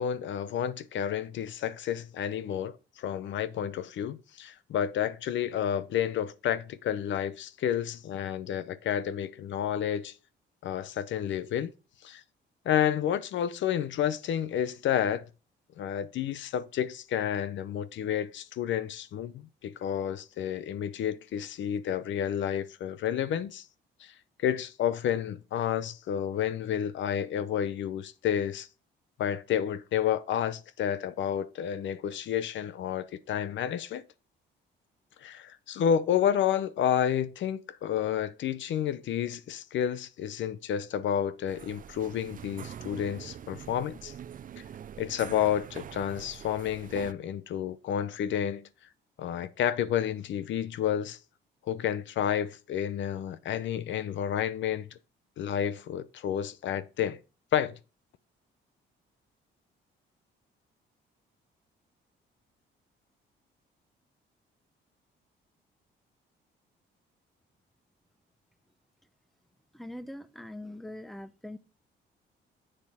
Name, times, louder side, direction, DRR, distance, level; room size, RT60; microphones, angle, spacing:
voice 1, 0.0-10.1 10.6-11.7 12.0-12.2 12.6-15.2 15.8-23.6 24.0-24.1 24.4-28.7 29.2-34.0 35.2-44.1 44.6-44.7 45.0-48.6 49.2-51.2 51.7-54.9 55.4-57.2 57.5-57.8, left 9 dB, 70° left, 0.7 m, -30 dB
sound 1, 41.5-47.1, right 9 dB, 45° right, 0.5 m, -44 dB
voice 2, 69.7-71.6, left 1 dB, ahead, 0.7 m, -42 dB
7.7 x 6.6 x 3.5 m
cardioid pair, 90°, 20 cm